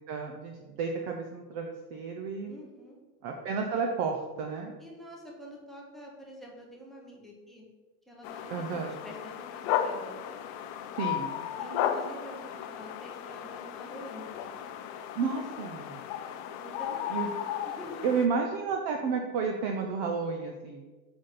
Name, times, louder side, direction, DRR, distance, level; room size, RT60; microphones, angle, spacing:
voice 1, 0.1-2.5 3.2-4.7 8.5-8.9 11.0-11.4 15.2-16.0 17.1-17.3 18.0-20.9, right 5 dB, 35° right, 3 dB, 0.4 m, -31 dB
voice 2, 2.4-3.0 4.8-7.6 8.1-10.2 11.6-14.3 16.6-17.3 17.6-18.1, equal, ahead, -2 dB, 0.7 m, -47 dB
sound 1, 8.2-18.3, left 9 dB, 45° left, 0.4 m, -35 dB
5.1 x 3.9 x 5.7 m, 1.2 s
supercardioid pair, 165°, 45 cm